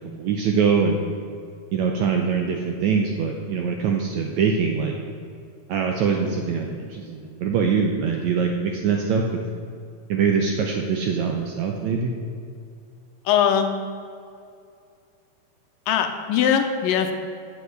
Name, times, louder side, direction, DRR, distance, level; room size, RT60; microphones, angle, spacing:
voice 1, 0.2-1.0 1.7-5.0 5.7-9.2 10.1-12.1, right 6 dB, 75° right, 2 dB, 1.7 m, -23 dB
voice 2, 13.3-13.7 15.9-17.1, left 8 dB, 80° left, 6 dB, 2.3 m, -20 dB
8.4 x 7.4 x 7.9 m, 2.4 s
omnidirectional pair, 4.1 m